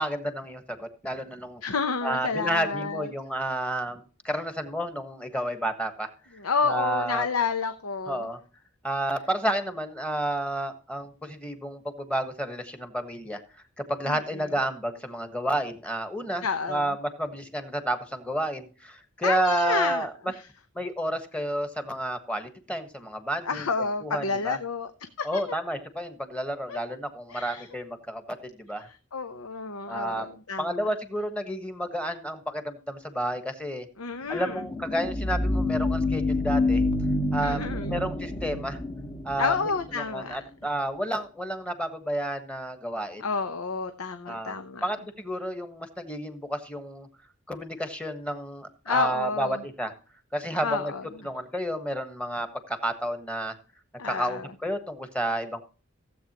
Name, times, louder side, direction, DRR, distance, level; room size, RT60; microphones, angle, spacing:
voice 1, 0.0-1.6 2.0-6.1 6.6-7.3 8.1-8.4 8.8-13.4 13.8-20.1 20.7-23.7 24.0-24.6 25.2-28.9 29.9-33.9 34.3-36.8 37.3-38.8 39.2-43.2 44.3-44.5 44.8-47.1 47.5-49.9 50.3-50.9 51.2-53.6 54.0-55.6, right 1 dB, 5° left, 8 dB, 1.4 m, -31 dB
voice 2, 1.6-3.1 6.4-8.3 14.1-14.2 16.4-16.9 19.2-20.4 23.5-24.9 25.2-25.6 26.7-26.8 27.3-27.7 28.8-30.9 34.0-34.6 37.4-38.1 39.4-40.4 43.2-44.8 48.8-49.6 50.6-51.0 54.0-54.5, left 4 dB, 90° left, 9 dB, 0.9 m, -30 dB
sound 1, 34.4-39.9, left 2 dB, 25° left, 1.0 m, -27 dB
16.5 x 8.1 x 3.0 m, 0.37 s
head